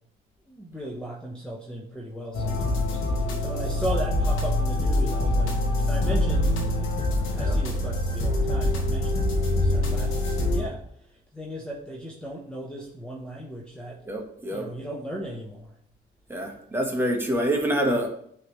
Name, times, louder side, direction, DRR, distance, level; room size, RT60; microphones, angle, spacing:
voice 1, 0.5-5.6 5.8-10.8 11.1-14.0 14.5-15.7, right 1 dB, 5° left, -2 dB, 1.0 m, -37 dB
sound 1, 2.3-10.6, left 1 dB, 85° left, 1.5 m, -24 dB
voice 2, 14.1-14.7 16.3-18.1, right 1 dB, 10° right, 1 dB, 1.5 m, -26 dB
9.6 x 3.4 x 3.2 m, 0.69 s
cardioid pair, 90°, 20 cm